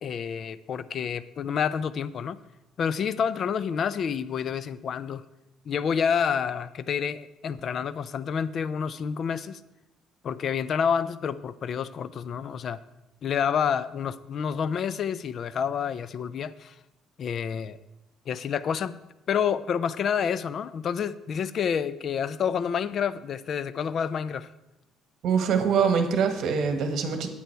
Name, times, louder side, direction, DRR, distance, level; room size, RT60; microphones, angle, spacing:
voice 1, 0.0-2.4 2.8-5.2 5.7-9.6 10.2-12.8 13.2-16.7 17.2-17.8 18.3-19.0 19.3-24.5, left 7 dB, 45° left, 16 dB, 0.4 m, -28 dB
voice 2, 25.2-27.3, right 6 dB, 65° right, 7 dB, 1.3 m, -24 dB
9.3 x 8.4 x 4.5 m, 0.95 s
cardioid pair, 130°, 0 cm